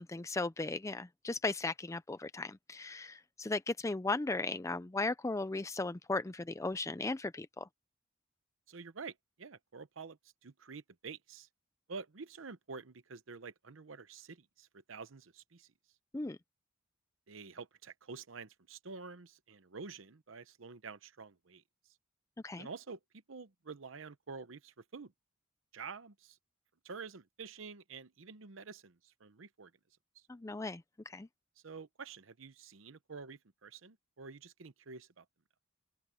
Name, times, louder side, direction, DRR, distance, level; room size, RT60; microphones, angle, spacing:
voice 1, 0.0-7.7 16.1-16.4 22.4-22.7 30.3-31.3, left 3 dB, 15° left, 0.4 m, -37 dB
voice 2, 8.7-11.5 11.9-15.7 17.3-21.6 22.6-23.0 23.3-25.1 25.7-26.4 26.8-29.7 31.6-35.2, right 4 dB, 85° right, 0.8 m, -48 dB
open air
head